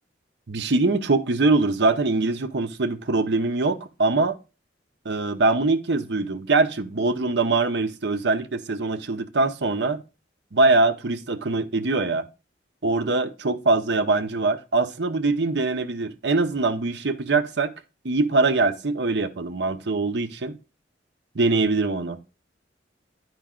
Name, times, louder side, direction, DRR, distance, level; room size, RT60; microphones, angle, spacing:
voice 1, 0.5-4.3 5.0-10.0 10.5-12.3 12.8-17.7 18.0-20.6 21.3-22.2, right 3 dB, 65° right, 0.7 m, -23 dB
10.5 x 5.2 x 3.7 m
head